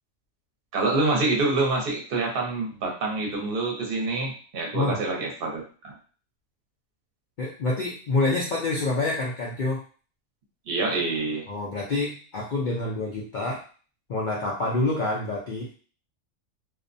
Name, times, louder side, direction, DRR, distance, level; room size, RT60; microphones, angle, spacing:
voice 1, 0.7-5.9 10.7-11.4, right 3 dB, 50° right, -1 dB, 0.8 m, -26 dB
voice 2, 7.4-9.8 11.5-13.6 14.1-15.7, left 2 dB, 90° left, -3 dB, 0.4 m, -27 dB
2.4 x 2.1 x 2.5 m, 0.39 s
omnidirectional pair, 1.5 m